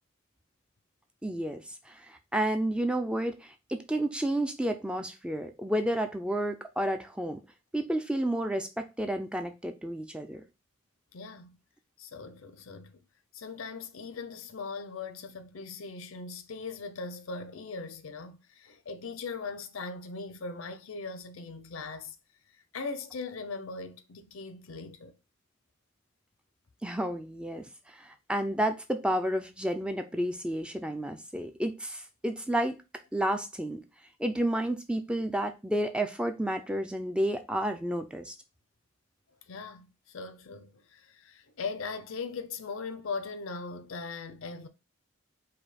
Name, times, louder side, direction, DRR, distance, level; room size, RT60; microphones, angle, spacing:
voice 1, 1.2-7.4 7.7-10.4 26.8-32.8 33.1-33.8 34.2-38.4, right 1 dB, 5° right, 0.3 m, -31 dB
voice 2, 11.1-11.6 12.0-13.0 13.3-22.2 22.7-25.1 39.5-44.7, left 4 dB, 75° left, 0.6 m, -40 dB
5.0 x 2.2 x 4.1 m
head